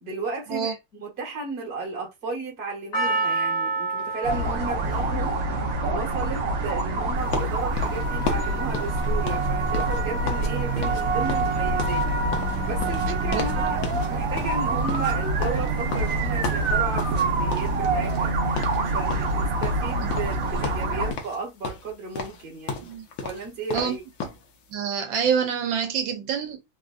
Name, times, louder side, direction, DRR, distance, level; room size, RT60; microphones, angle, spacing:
voice 1, 0.0-5.4 5.8-12.1 12.7-13.8 14.1-18.4 18.7-22.9 23.2-24.0, right 3 dB, 35° right, 1.3 m, -34 dB
Percussion, 2.9-7.3 7.9-8.0, right 3 dB, 50° left, 1.4 m, -30 dB
sound 1, 4.2-21.1, right 2 dB, 60° right, 1.0 m, -25 dB
sound 2, 7.3-10.5 10.8-11.0 11.3-13.6 13.8-14.1 14.4-17.2 17.5-18.3 18.6-18.8 19.1-20.4 20.6-21.4 21.6-24.4, left 5 dB, 80° left, 1.5 m, -33 dB
voice 2, 24.7-26.6, right 7 dB, 80° right, 1.3 m, -26 dB
3.7 x 2.4 x 2.4 m
omnidirectional pair, 2.0 m